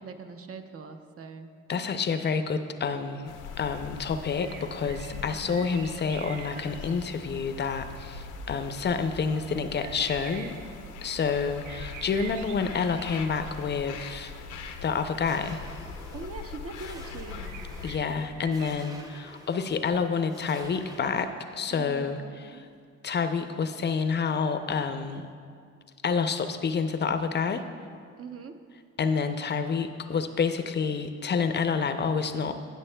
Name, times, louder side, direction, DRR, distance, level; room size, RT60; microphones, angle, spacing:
voice 1, 0.0-1.5 5.1-5.7 16.1-17.6 21.7-22.6 28.2-28.6, right 4 dB, 50° right, 7 dB, 0.7 m, -42 dB
voice 2, 1.7-10.6 11.0-14.3 14.8-15.6 17.8-22.2 22.5-22.6 23.0-25.3 26.0-27.6 29.0-32.6, left 5 dB, 35° left, 9 dB, 0.5 m, -28 dB
sound 1, 3.2-18.0, left 7 dB, 85° left, 0.6 m, -42 dB
sound 2, 3.9-18.7, right 6 dB, 90° right, 0.5 m, -46 dB
sound 3, 15.2-21.3, right 1 dB, 10° right, 0.8 m, -49 dB
17.0 x 6.4 x 2.2 m, 2.2 s
cardioid pair, 90°, 30 cm